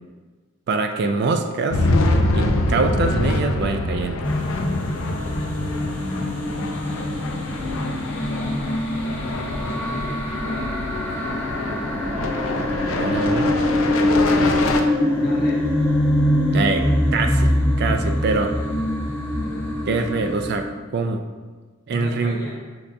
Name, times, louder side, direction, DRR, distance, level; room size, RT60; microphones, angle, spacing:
voice 1, 0.7-1.8 2.3-4.3 12.9-13.5 16.5-16.9 17.1-17.5 17.8-18.5 19.9-21.2 21.9-22.4, right 4 dB, 55° right, 6 dB, 0.3 m, -24 dB
sound 1, 1.7-14.8, left 2 dB, 90° left, 0.4 m, -25 dB
sound 2, 4.2-20.6, left 1 dB, 5° left, 0.6 m, -23 dB
voice 2, 6.0-6.4 7.5-8.8 9.3-11.4 15.1-15.6 21.9-22.6, left 1 dB, 45° left, -3 dB, 0.9 m, -37 dB
5.4 x 3.4 x 2.6 m, 1.4 s
head